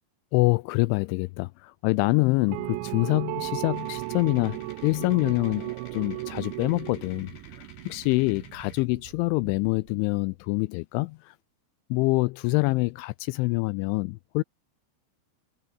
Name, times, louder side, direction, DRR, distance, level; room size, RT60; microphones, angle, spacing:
voice 1, 0.3-11.4 11.9-14.4, left 24 dB, 85° left, 2.8 m, -26 dB
sound 1, 2.5-10.0, right 20 dB, 85° right, 2.7 m, -36 dB
sound 2, 3.7-8.9, left 7 dB, 65° left, 6.6 m, -53 dB
omnidirectional pair, 5.7 m